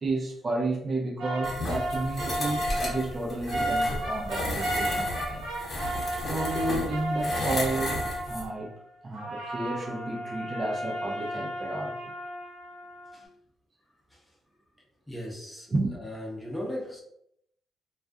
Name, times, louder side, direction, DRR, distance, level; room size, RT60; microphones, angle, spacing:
voice 1, 0.0-5.5 6.3-8.7 9.0-12.1 15.7-16.0, right 2 dB, 35° right, 0 dB, 0.6 m, -31 dB
sound 1, 1.2-8.7 9.1-13.2, right 1 dB, 90° right, 0.6 m, -33 dB
sound 2, 1.4-8.5, left 1 dB, 40° left, 0.8 m, -33 dB
voice 2, 15.1-15.7 16.0-17.0, left 1 dB, 5° left, -2 dB, 0.8 m, -37 dB
2.4 x 2.3 x 2.4 m, 0.74 s
cardioid pair, 75°, 0 cm